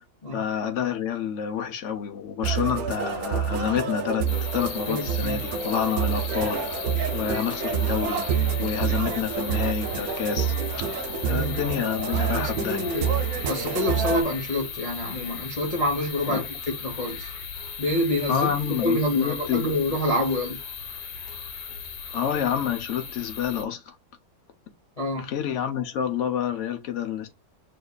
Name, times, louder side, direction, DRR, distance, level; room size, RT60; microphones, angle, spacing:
voice 1, 0.3-6.9 7.1-8.3 8.6-10.9 11.2-12.9 16.3-16.4 18.3-19.7 22.1-23.9 25.1-27.3, left 8 dB, 55° left, 0.9 m, -28 dB
sound 1, 2.4-14.2, right 7 dB, 70° right, 0.9 m, -28 dB
sound 2, 4.3-23.7, left 6 dB, 85° left, 1.8 m, -37 dB
voice 2, 4.9-5.4 11.3-11.7 12.4-13.2 13.5-16.5 16.8-17.3 17.8-18.5 18.8-20.6 25.0-25.3, left 1 dB, 40° left, 0.5 m, -27 dB
6.4 x 2.8 x 2.3 m
omnidirectional pair, 2.1 m